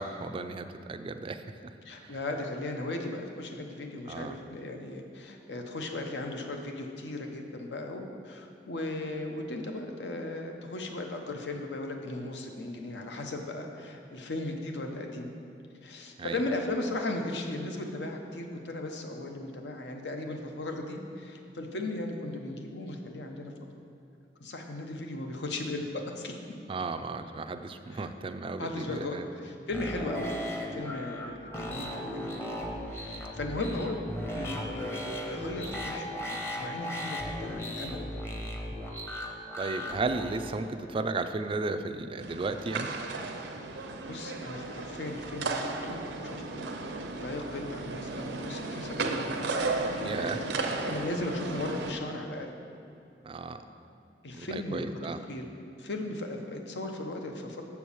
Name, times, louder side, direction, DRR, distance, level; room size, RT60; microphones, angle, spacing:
voice 1, 0.0-1.4 1.9-2.2 4.1-4.4 16.2-16.4 26.7-29.2 39.6-42.9 50.0-50.4 53.2-53.6 54.4-55.2, right 3 dB, 30° right, 9 dB, 0.3 m, -34 dB
voice 2, 1.8-15.3 15.8-23.5 24.4-26.3 27.9-28.1 28.6-30.4 30.7-32.6 32.9-36.1 36.6-38.1 44.1-46.6 47.2-52.5 54.2-55.4 55.8-57.6, left 2 dB, 75° left, 3 dB, 0.8 m, -37 dB
sound 1, 29.7-40.5, equal, 15° left, 0.7 m, -37 dB
sound 2, 42.2-51.9, right 3 dB, 75° right, 0.6 m, -34 dB
7.0 x 4.6 x 6.9 m, 2.6 s
head